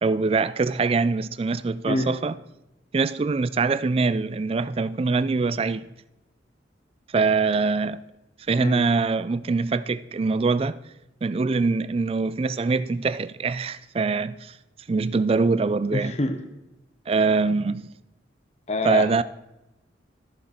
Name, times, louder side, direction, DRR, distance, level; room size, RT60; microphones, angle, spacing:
voice 1, 0.0-2.3 2.9-5.9 7.1-8.0 8.5-10.8 11.2-14.5 14.9-16.1 17.1-17.9 18.8-19.2, right 4 dB, 30° right, 0.3 m, -23 dB
voice 2, 1.9-2.2 8.6-8.8 15.9-16.4 18.7-19.1, left 2 dB, 35° left, 0.7 m, -26 dB
13.5 x 7.1 x 4.3 m
head